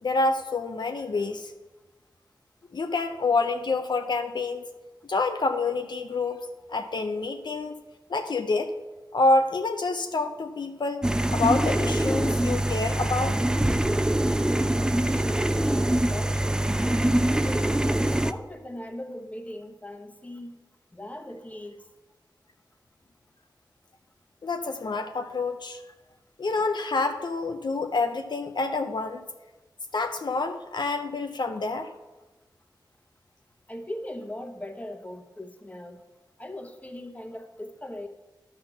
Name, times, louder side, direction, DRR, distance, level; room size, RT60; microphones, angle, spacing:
voice 1, 0.0-1.5 2.7-4.6 5.1-6.4 6.7-7.7 8.1-8.7 9.1-11.1 11.3-13.4 24.4-25.8 26.4-29.2 29.9-31.9, left 3 dB, 65° left, 6 dB, 0.5 m, -27 dB
sound 1, 11.0-18.3, right 1 dB, 10° right, 0.4 m, -24 dB
voice 2, 14.8-16.7 17.3-20.6 20.9-21.8 33.7-36.0 36.4-38.1, left 1 dB, 20° left, 5 dB, 1.0 m, -39 dB
11.5 x 4.0 x 6.9 m, 1.2 s
wide cardioid pair, 65°, 8 cm